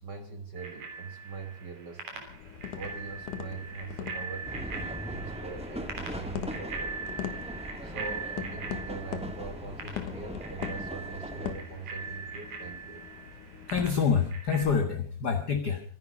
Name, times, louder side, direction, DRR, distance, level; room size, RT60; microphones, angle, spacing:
voice 1, 0.0-2.3 2.7-7.0 7.8-13.0, right 4 dB, 45° right, 7 dB, 1.5 m, -42 dB
Bicycle bell, 0.6-14.6, right 5 dB, 85° right, 5.0 m, -41 dB
sound 1, 2.3-14.3, left 9 dB, 80° left, 2.9 m, -42 dB
sound 2, 4.4-11.5, equal, 5° right, 0.7 m, -40 dB
voice 2, 13.7-15.8, left 6 dB, 45° left, 6 dB, 1.5 m, -27 dB
25.5 x 10.5 x 5.2 m, 0.42 s
omnidirectional pair, 3.6 m